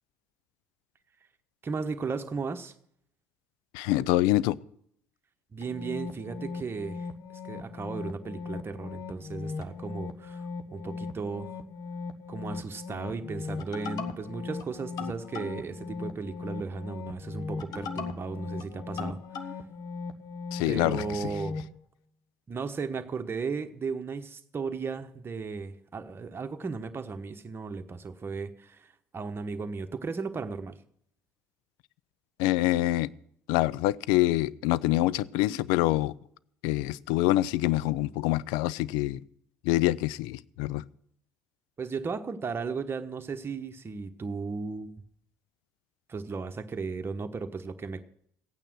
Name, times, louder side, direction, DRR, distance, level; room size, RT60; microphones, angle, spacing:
voice 1, 1.6-2.7 5.5-7.1 7.4-11.6 12.3-19.5 20.7-21.6 22.5-30.8 41.8-45.0 46.1-48.0, right 4 dB, 30° right, 6 dB, 1.1 m, -35 dB
voice 2, 3.7-4.6 20.5-21.3 32.4-33.1 33.5-36.1 36.6-39.2 39.6-40.8, left 16 dB, 70° left, 21 dB, 0.4 m, -26 dB
sound 1, 5.6-21.7, left 4 dB, 55° left, 1.2 m, -38 dB
15.5 x 9.0 x 6.1 m, 0.68 s
hypercardioid pair, 60°, 8 cm